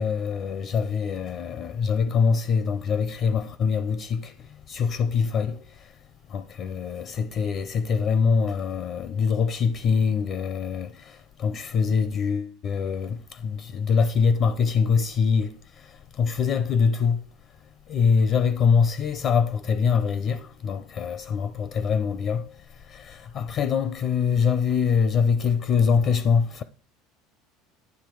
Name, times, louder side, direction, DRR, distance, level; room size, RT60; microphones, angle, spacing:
voice 1, 0.0-6.0 6.3-17.3 17.9-26.6, left 6 dB, 35° left, 0.5 m, -24 dB
10.5 x 7.2 x 4.6 m
cardioid pair, 160°, 0 cm